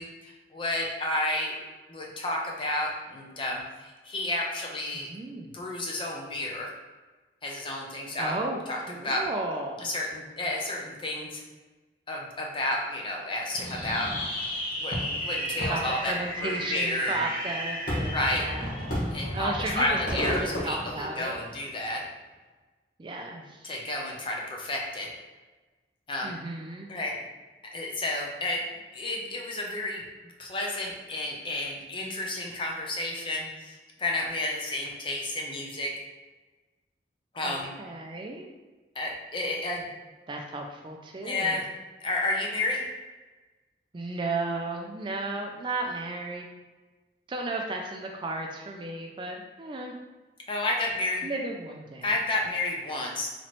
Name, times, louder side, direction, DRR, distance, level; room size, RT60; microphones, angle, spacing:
voice 1, 0.0-1.6 1.9-5.1 5.5-6.7 7.4-8.3 8.7-8.8 9.0-9.2 9.8-11.4 12.1-14.1 14.7-16.1 16.4-17.2 18.1-18.4 19.1-22.0 23.6-25.1 26.1-26.3 26.9-27.1 27.7-28.6 28.9-30.0 30.4-35.9 37.3-37.7 39.0-39.9 41.2-41.7 42.0-42.9 50.5-51.3 52.0-53.3, left 2 dB, 30° left, -1 dB, 0.6 m, -31 dB
voice 2, 4.9-5.5 8.2-9.9 15.7-18.7 19.3-21.4 23.0-23.7 26.2-26.9 37.4-38.5 40.3-41.6 43.9-46.5 47.3-49.9 51.2-52.1, right 2 dB, 25° right, 1 dB, 0.3 m, -34 dB
Fireworks, 13.6-21.7, equal, 50° left, 1.2 m, -32 dB
4.1 x 3.0 x 3.0 m, 1.2 s
head